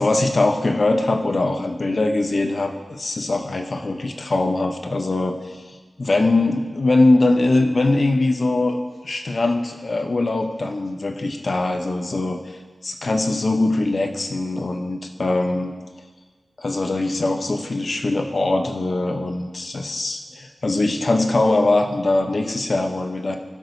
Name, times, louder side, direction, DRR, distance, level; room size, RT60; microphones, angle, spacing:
voice 1, 0.0-5.6 6.0-8.8 9.0-12.6 12.8-15.7 16.6-23.4, left 2 dB, 50° left, 5 dB, 0.8 m, -21 dB
16.5 x 6.1 x 2.7 m, 1.4 s
wide cardioid pair, 90°, 0 cm